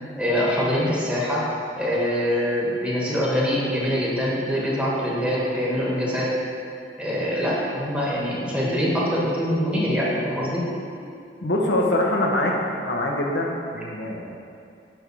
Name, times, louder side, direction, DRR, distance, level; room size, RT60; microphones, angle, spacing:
voice 1, 0.2-1.5 1.8-6.3 7.0-10.6, equal, 5° right, -6 dB, 1.4 m, -24 dB
voice 2, 11.4-12.6 12.8-14.4, left 1 dB, 75° left, -1 dB, 1.0 m, -24 dB
8.9 x 3.5 x 6.1 m, 2.5 s
head